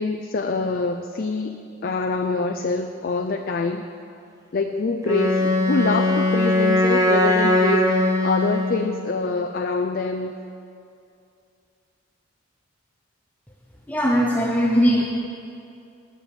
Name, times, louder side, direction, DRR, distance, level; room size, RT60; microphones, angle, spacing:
voice 1, 0.0-3.8 4.5-10.3, left 3 dB, 45° left, 5 dB, 0.4 m, -25 dB
Wind instrument woodwind instrument, 5.0-9.0, left 1 dB, 15° right, 1.0 m, -20 dB
voice 2, 13.9-15.0, equal, 10° left, -2 dB, 0.7 m, -19 dB
9.9 x 6.8 x 8.8 m, 2.5 s
head